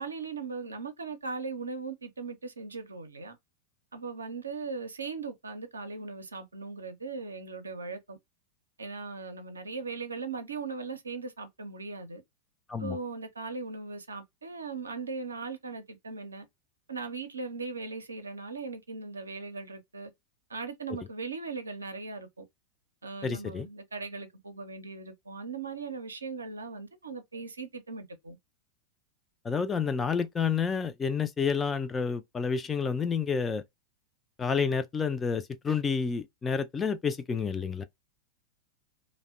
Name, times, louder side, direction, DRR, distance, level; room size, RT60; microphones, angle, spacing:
voice 1, 0.0-3.4 3.9-8.2 8.8-12.2 12.8-16.5 16.9-20.1 20.5-22.4 23.0-28.4, right 4 dB, 75° right, 0.5 m, -39 dB
voice 2, 23.2-23.7 29.4-33.6 34.4-37.8, left 6 dB, 15° left, 0.3 m, -29 dB
2.7 x 2.0 x 2.3 m
figure-of-eight pair, 90°, 0 cm